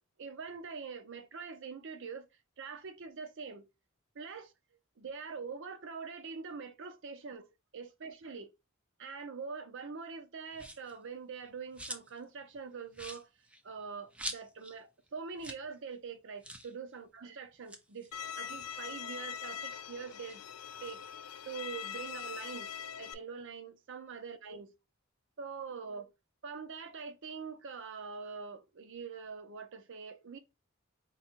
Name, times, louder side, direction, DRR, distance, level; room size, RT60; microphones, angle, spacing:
voice 1, 0.2-2.3 2.6-3.7 4.1-4.5 5.0-7.4 7.7-8.5 9.0-13.3 13.6-18.1 18.4-20.4 20.8-21.0 21.5-24.7 25.4-26.1 26.4-30.4, right 5 dB, 60° right, 0.6 m, -44 dB
sound 1, 10.5-11.0 11.4-12.2 12.5-12.6 12.9-14.8 15.1-15.2 15.4-15.7 15.9-16.0 16.4-16.7 17.5-19.2 19.6-21.1, right 1 dB, 5° right, 0.4 m, -46 dB
Bowed string instrument, 18.1-23.1, left 8 dB, 70° left, 0.4 m, -42 dB
3.8 x 2.2 x 4.4 m
head